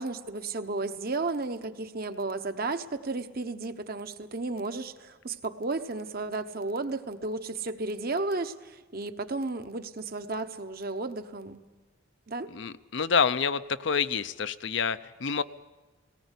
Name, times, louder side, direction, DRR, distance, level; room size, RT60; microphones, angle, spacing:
voice 1, 0.0-11.6 12.3-12.5, right 3 dB, 45° right, 8 dB, 1.0 m, -33 dB
voice 2, 12.5-15.4, left 6 dB, 60° left, 13 dB, 0.6 m, -28 dB
19.0 x 18.5 x 8.3 m, 1.2 s
head